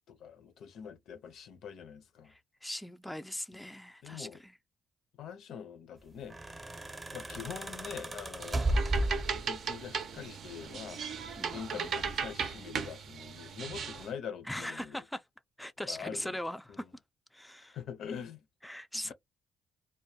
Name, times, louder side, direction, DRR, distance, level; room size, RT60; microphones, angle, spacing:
voice 1, 0.1-2.3 4.0-4.4 5.2-6.4 7.1-8.8 9.3-11.0 11.5-15.0 15.9-16.4 16.7-16.8 17.7-18.4, left 7 dB, 75° left, 0.5 m, -44 dB
voice 2, 2.3-4.6 11.4-12.0 14.4-15.2 15.6-16.9 17.3-17.8 18.6-19.1, left 1 dB, 5° left, 0.3 m, -40 dB
sound 1, 6.1-9.7 10.8-11.6 12.0-12.3, right 1 dB, 20° right, 0.7 m, -34 dB
sound 2, 8.4-14.1, right 6 dB, 65° right, 0.5 m, -37 dB
2.2 x 2.1 x 2.7 m
cardioid pair, 90°, 0 cm